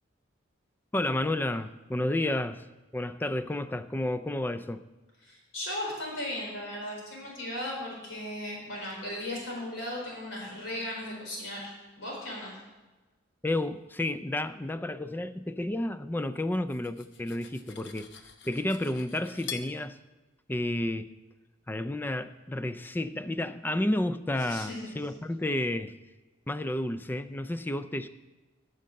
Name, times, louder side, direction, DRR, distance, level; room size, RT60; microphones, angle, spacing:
voice 1, 0.9-2.6 2.9-4.8 13.4-18.1 18.4-20.0 20.5-21.1 21.7-25.9 26.5-28.1, left 1 dB, 10° left, 11 dB, 0.3 m, -31 dB
voice 2, 5.2-11.7 12.0-12.5 24.5-24.9, left 1 dB, 90° left, -3 dB, 4.4 m, -36 dB
Cutlery silverware, 16.5-19.7, left 8 dB, 65° left, 0.9 m, -45 dB
9.3 x 6.5 x 7.6 m, 1.2 s
head